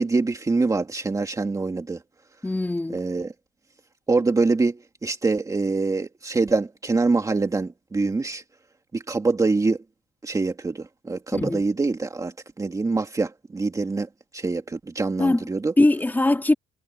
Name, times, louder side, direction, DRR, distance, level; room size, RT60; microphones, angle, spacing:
voice 1, 0.0-2.0 2.9-3.3 4.1-8.4 8.9-9.8 10.2-15.7, right 3 dB, 20° right, 2.3 m, -25 dB
voice 2, 2.4-3.0 11.3-11.6 15.2-15.4 15.8-16.5, left 2 dB, 10° left, 3.5 m, -21 dB
cardioid pair, 110°, 17 cm